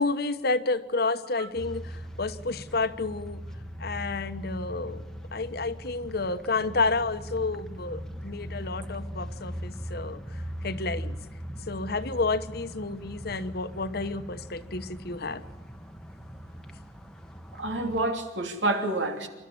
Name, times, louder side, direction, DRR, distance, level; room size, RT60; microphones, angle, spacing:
voice 1, 0.0-3.4 3.8-5.0 5.3-10.2 10.6-11.2 11.7-15.4, left 3 dB, 55° left, 11 dB, 1.1 m, -30 dB
sound 1, 1.6-18.0, equal, 5° left, 1.1 m, -40 dB
voice 2, 17.5-19.3, right 2 dB, 90° right, 5 dB, 3.0 m, -28 dB
28.0 x 13.0 x 8.8 m, 1.2 s
head